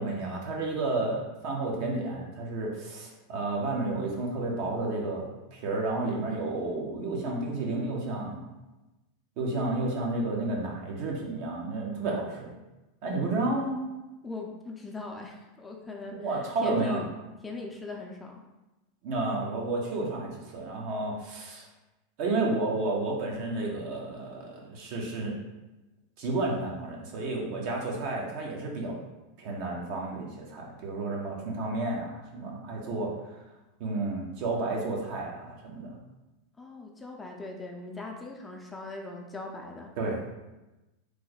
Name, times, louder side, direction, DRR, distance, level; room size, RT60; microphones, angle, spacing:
voice 1, 0.0-8.4 9.4-12.5 13.0-13.8 16.1-17.0 19.0-21.6 22.2-25.4 26.2-28.9 29.4-33.1 33.8-35.9 40.0-40.3, right 2 dB, 60° right, -1 dB, 0.9 m, -31 dB
voice 2, 14.2-17.1 17.4-18.3 36.6-39.9, left 3 dB, 15° left, 0 dB, 0.5 m, -40 dB
3.2 x 2.1 x 3.9 m, 1.0 s
hypercardioid pair, 100°, 0 cm